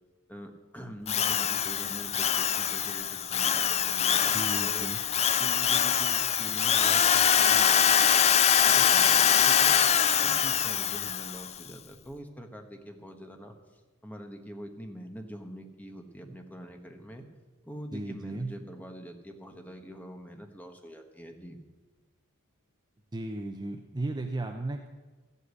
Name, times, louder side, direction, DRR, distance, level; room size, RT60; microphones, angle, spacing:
voice 1, 0.3-4.9 5.4-8.4 8.6-9.8 10.2-13.6 14.0-17.2 17.6-21.6, equal, 5° left, 4 dB, 1.3 m, -44 dB
Drill, 1.1-11.5, left 9 dB, 30° left, 0.4 m, -24 dB
voice 2, 4.3-5.0 17.9-18.5 23.1-24.9, right 2 dB, 20° right, 4 dB, 0.7 m, -35 dB
14.0 x 8.2 x 8.3 m, 1.2 s
head